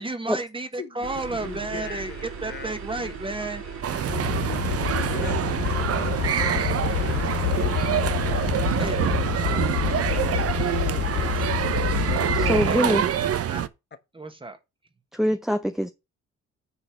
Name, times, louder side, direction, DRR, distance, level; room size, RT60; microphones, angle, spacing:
voice 1, 0.0-2.1 2.4-3.6 8.8-9.0 11.1-11.7 12.6-13.6 14.1-14.6, right 2 dB, 15° right, 1.6 m, -33 dB
voice 2, 0.8-4.1 4.5-4.7 4.9-9.1 9.9-10.5 12.0-12.1 14.2-14.3, left 6 dB, 35° left, 1.0 m, -42 dB
sound 1, 1.0-11.8, right 6 dB, 70° right, 6.1 m, -38 dB
sound 2, 3.8-13.7, right 9 dB, 50° right, 0.8 m, -26 dB
sound 3, 4.1-12.7, left 15 dB, 80° left, 0.6 m, -28 dB
voice 3, 12.3-13.0 15.1-15.9, equal, ahead, 0.7 m, -23 dB
9.9 x 4.0 x 6.1 m
cardioid pair, 90°, 30 cm